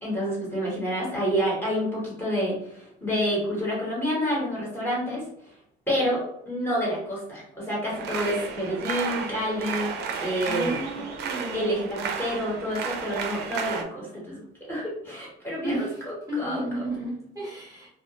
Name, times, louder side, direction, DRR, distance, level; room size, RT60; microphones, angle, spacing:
voice 1, 0.0-5.2 5.9-9.9 10.2-11.0 11.5-16.9, equal, 10° left, -6 dB, 0.9 m, -28 dB
sound 1, 7.9-13.8, right 6 dB, 60° right, 0.4 m, -32 dB
voice 2, 10.4-11.8 15.6-17.9, right 1 dB, 15° right, -6 dB, 0.8 m, -33 dB
2.3 x 2.1 x 2.8 m, 0.73 s
cardioid pair, 155°, 19 cm